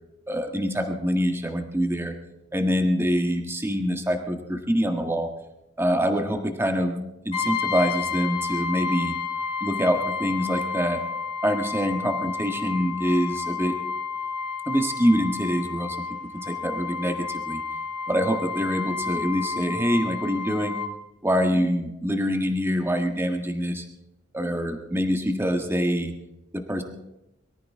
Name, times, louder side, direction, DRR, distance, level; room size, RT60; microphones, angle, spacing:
voice 1, 0.3-2.1 2.5-5.3 5.8-9.1 9.6-11.0 11.4-13.7 14.7-16.0 16.4-17.6 18.1-20.8 21.2-23.8 24.3-26.1 26.7-26.8, equal, 10° right, 4 dB, 1.6 m, -25 dB
Brass instrument, 7.3-20.9, left 5 dB, 35° left, 2.6 m, -31 dB
23.0 x 14.0 x 3.7 m, 0.93 s
head